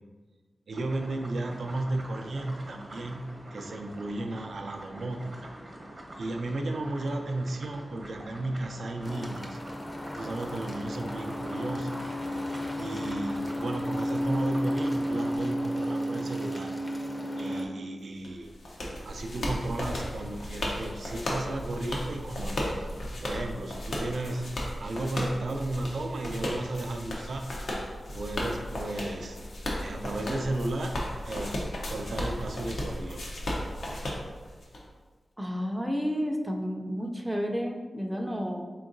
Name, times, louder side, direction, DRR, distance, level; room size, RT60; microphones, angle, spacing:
sound 1, 0.7-15.4, right 1 dB, 45° right, 0.8 m, -45 dB
voice 1, 0.7-3.3 3.5-5.5 6.2-9.6 10.1-12.1 12.8-16.7 17.4-18.5 19.0-22.7 23.2-24.5 24.8-27.5 28.1-29.4 29.8-31.0 31.2-31.6 31.9-33.3, right 2 dB, 75° right, 4 dB, 0.4 m, -34 dB
sound 2, 9.0-17.7, equal, 35° left, 0.5 m, -32 dB
sound 3, 18.2-34.8, left 1 dB, 85° left, 0.6 m, -35 dB
voice 2, 35.4-38.6, equal, 15° right, 1 dB, 0.4 m, -31 dB
3.8 x 3.5 x 2.6 m, 1.4 s
wide cardioid pair, 70°, 0 cm